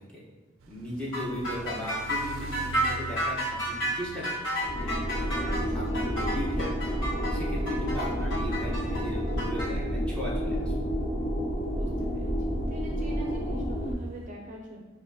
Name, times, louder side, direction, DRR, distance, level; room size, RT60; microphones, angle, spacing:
sound 1, 0.6-14.3, right 3 dB, 90° right, 0.4 m, -48 dB
voice 1, 0.7-4.3 4.6-6.9 7.3-10.7, equal, 5° left, -7 dB, 1.0 m, -37 dB
sound 2, 1.1-9.7, right 1 dB, 70° left, 1.4 m, -31 dB
sound 3, 4.6-13.9, equal, 35° left, 0.8 m, -30 dB
voice 2, 5.4-5.9 11.7-14.8, right 2 dB, 40° right, -1 dB, 0.6 m, -41 dB
7.1 x 2.6 x 2.7 m, 1.2 s
head